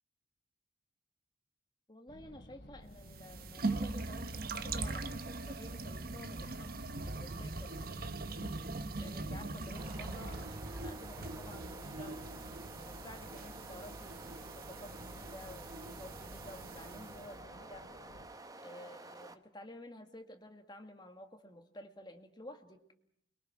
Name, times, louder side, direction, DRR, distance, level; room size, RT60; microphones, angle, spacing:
voice 1, 1.9-6.7 7.0-8.1 9.0-12.2 12.8-17.9 18.6-22.8, left 1 dB, 25° left, 5 dB, 2.1 m, -52 dB
sound 1, 2.1-18.3, left 1 dB, 70° left, 3.0 m, -55 dB
sound 2, 3.0-17.3, right 2 dB, 55° right, 1.1 m, -41 dB
sound 3, 9.7-19.4, right 2 dB, 20° right, 1.0 m, -51 dB
29.5 x 22.5 x 6.1 m, 0.71 s
head